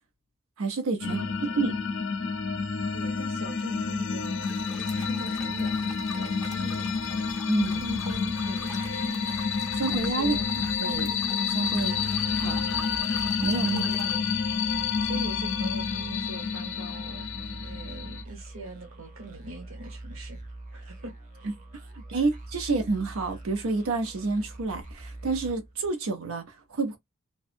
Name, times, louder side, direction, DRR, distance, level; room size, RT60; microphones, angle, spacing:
voice 1, 0.6-1.2 1.6-1.9 7.5-7.8 9.7-11.1 11.5-11.9 12.4-12.7 13.4-13.8 22.1-27.0, right 3 dB, 90° right, 0.6 m, -29 dB
sound 1, 1.0-18.2, left 5 dB, 60° left, 0.4 m, -29 dB
voice 2, 1.1-1.6 2.9-4.5 4.9-7.1 7.8-9.3 9.9-10.5 13.7-14.3 15.0-20.4 20.7-21.1, equal, 70° right, 1.2 m, -42 dB
sound 2, 4.4-14.2, left 1 dB, ahead, 0.6 m, -45 dB
sound 3, 6.4-26.1, right 1 dB, 40° right, 0.7 m, -44 dB
2.6 x 2.2 x 2.4 m
head